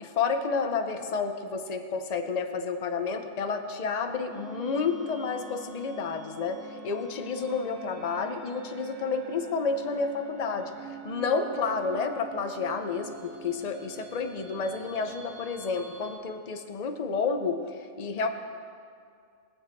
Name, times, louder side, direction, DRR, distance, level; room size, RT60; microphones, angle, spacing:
voice 1, 0.0-18.3, left 4 dB, 35° left, 6 dB, 0.8 m, -30 dB
sound 1, 4.3-16.2, right 2 dB, 80° right, 2.2 m, -46 dB
22.0 x 7.7 x 4.6 m, 2.3 s
omnidirectional pair, 1.4 m